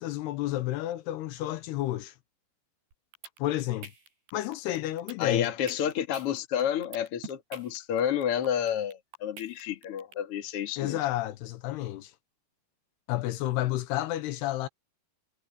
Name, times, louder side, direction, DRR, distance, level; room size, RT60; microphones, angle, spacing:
voice 1, 0.0-2.1 3.4-3.9 4.3-5.5 10.8-12.1 13.1-14.7, left 15 dB, 85° left, 3.0 m, -31 dB
sound 1, 2.9-10.1, right 4 dB, 75° right, 9.2 m, -46 dB
voice 2, 5.2-11.0, left 9 dB, 45° left, 2.3 m, -30 dB
omnidirectional pair, 4.7 m